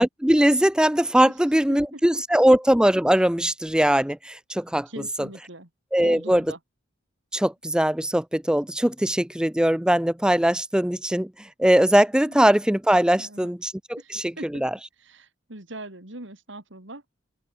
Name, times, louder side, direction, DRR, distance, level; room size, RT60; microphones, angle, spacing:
voice 1, 0.0-4.9 5.2-5.3 5.9-6.4 7.3-14.7, right 1 dB, 5° right, 0.5 m, -21 dB
voice 2, 1.7-2.2 4.9-5.7 6.0-6.6 12.3-12.4 13.2-13.5 14.0-14.6 15.0-17.1, right 2 dB, 70° right, 3.5 m, -41 dB
open air
head